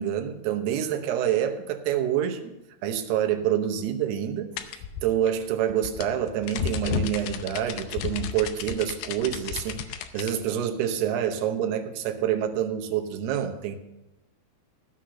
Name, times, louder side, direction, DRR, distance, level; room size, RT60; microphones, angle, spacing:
voice 1, 0.0-2.6 2.8-13.8, right 10 dB, 85° right, 5 dB, 3.0 m, -27 dB
sound 1, 4.6-10.3, left 8 dB, 85° left, 2.6 m, -33 dB
15.5 x 5.9 x 6.3 m, 0.96 s
omnidirectional pair, 4.6 m